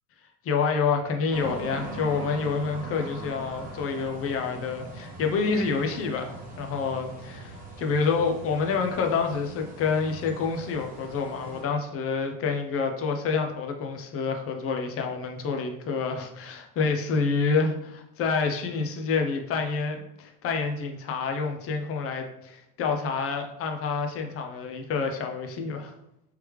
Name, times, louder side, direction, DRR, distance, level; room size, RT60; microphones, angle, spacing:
voice 1, 0.4-25.9, left 5 dB, 30° left, 4 dB, 0.5 m, -28 dB
sound 1, 1.3-11.6, right 2 dB, 20° right, 1.0 m, -41 dB
3.3 x 3.2 x 3.1 m, 0.81 s
cardioid pair, 135°, 45 cm